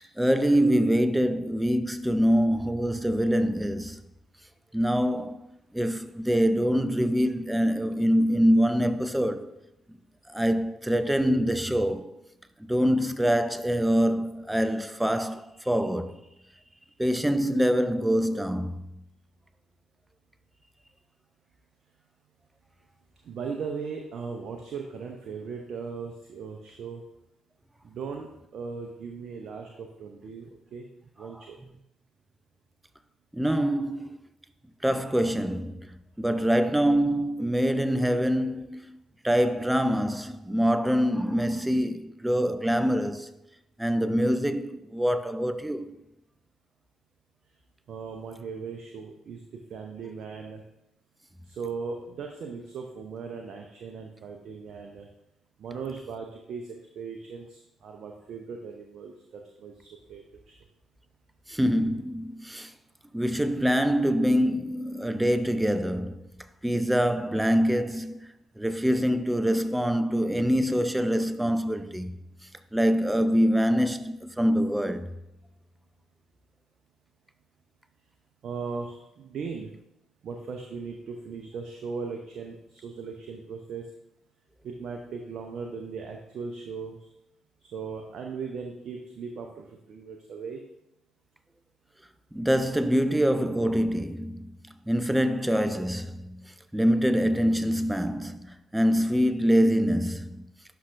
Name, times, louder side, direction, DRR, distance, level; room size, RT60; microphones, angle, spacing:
voice 1, 0.2-4.0 4.7-5.4 5.7-9.5 10.3-12.1 12.6-16.2 17.0-18.9 33.3-34.2 34.8-39.0 39.2-43.3 43.8-45.9 61.5-62.7 63.1-66.2 66.6-68.3 68.6-72.1 72.7-75.1 92.3-94.5 94.9-100.4, equal, 10° right, 0.6 m, -25 dB
voice 2, 23.2-27.0 27.8-30.9 31.2-31.6 47.9-49.4 49.7-50.6 51.4-55.1 55.6-60.6 78.4-79.7 80.2-83.9 84.6-87.0 87.6-90.6, right 5 dB, 60° right, 0.7 m, -38 dB
11.5 x 5.6 x 2.6 m
hypercardioid pair, 45°, 0 cm